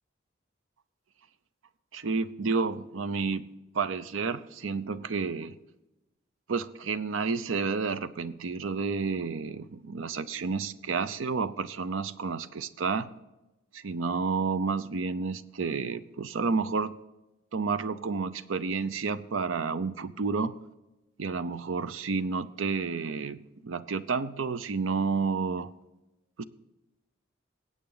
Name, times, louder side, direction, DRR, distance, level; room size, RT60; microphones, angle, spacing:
voice 1, 1.9-3.5 3.7-5.6 6.5-13.1 13.7-17.0 17.5-20.6 21.2-25.7 26.4-26.5, right 4 dB, 85° right, 14 dB, 0.6 m, -30 dB
20.0 x 8.6 x 3.9 m, 1.0 s
head